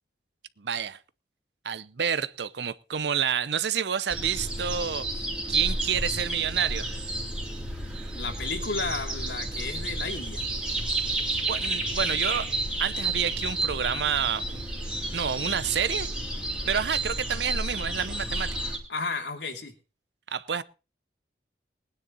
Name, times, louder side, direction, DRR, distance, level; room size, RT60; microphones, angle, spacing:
voice 1, 0.6-1.0 1.6-5.1 5.5-6.9 11.4-12.5 12.8-14.6 15.1-16.1 16.7-18.5 20.3-20.6, right 7 dB, 75° right, 16 dB, 0.7 m, -29 dB
sound 1, 4.1-18.8, right 2 dB, 5° right, 2.7 m, -31 dB
voice 2, 8.1-10.5 18.9-19.7, left 3 dB, 80° left, 4 dB, 2.9 m, -33 dB
20.0 x 9.8 x 4.1 m, 0.33 s
head